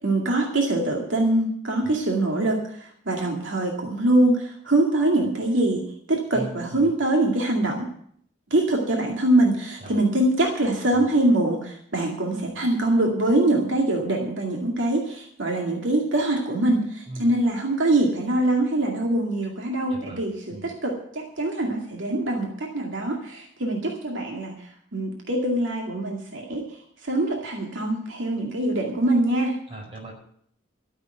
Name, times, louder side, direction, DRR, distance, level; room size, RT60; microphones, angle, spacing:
voice 1, 0.0-7.9 8.5-26.7 27.0-29.6, right 1 dB, 75° right, 0 dB, 2.3 m, -23 dB
voice 2, 6.3-6.9 9.8-10.0 10.9-11.1 17.1-17.3 19.9-20.2 20.5-20.7 29.7-30.1, right 2 dB, 30° right, -1 dB, 5.2 m, -38 dB
13.5 x 7.3 x 9.0 m, 0.66 s
head